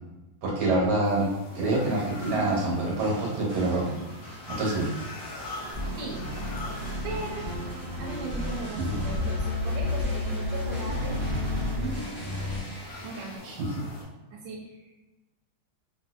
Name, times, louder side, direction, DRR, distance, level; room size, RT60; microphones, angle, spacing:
voice 1, 0.4-1.3 1.5-3.9 4.5-4.9 8.8-9.0 13.4-13.8, right 2 dB, 60° right, -3 dB, 1.4 m, -26 dB
sound 1, 1.0-14.0, left 1 dB, 60° left, 1.5 m, -44 dB
voice 2, 1.5-2.6 6.0-6.3 7.0-11.2 11.8-12.3 13.0-13.5 14.3-15.0, right 3 dB, 85° right, -2 dB, 1.4 m, -38 dB
sound 2, 1.7-13.4, equal, 35° left, 0.7 m, -45 dB
sound 3, 5.7-12.6, left 2 dB, 20° right, 0.6 m, -31 dB
3.7 x 2.5 x 2.4 m, 1.1 s
omnidirectional pair, 2.2 m